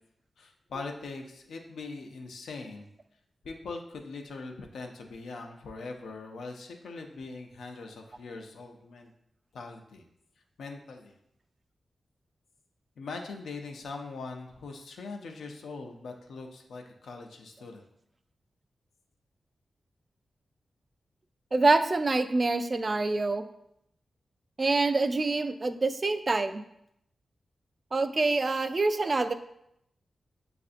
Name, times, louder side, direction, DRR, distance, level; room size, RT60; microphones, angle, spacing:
voice 1, 0.4-2.9 3.4-9.1 9.5-10.0 10.6-11.2 13.0-17.9, left 3 dB, 85° left, 3 dB, 0.5 m, -41 dB
voice 2, 21.5-23.5 24.6-26.6 27.9-29.3, right 3 dB, 45° right, 9 dB, 0.3 m, -26 dB
6.7 x 2.5 x 2.4 m, 0.77 s
cardioid pair, 50°, 0 cm